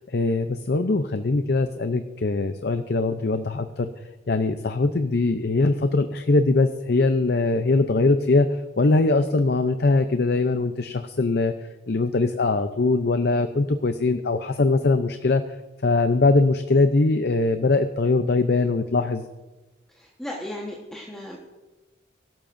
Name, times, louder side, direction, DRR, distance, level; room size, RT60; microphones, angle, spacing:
voice 1, 0.1-3.9 4.3-11.5 11.9-15.6 15.8-19.3, left 3 dB, 55° left, 8 dB, 0.6 m, -22 dB
voice 2, 19.9-21.4, left 1 dB, 5° left, -3 dB, 1.3 m, -36 dB
23.5 x 12.5 x 2.6 m, 1.1 s
head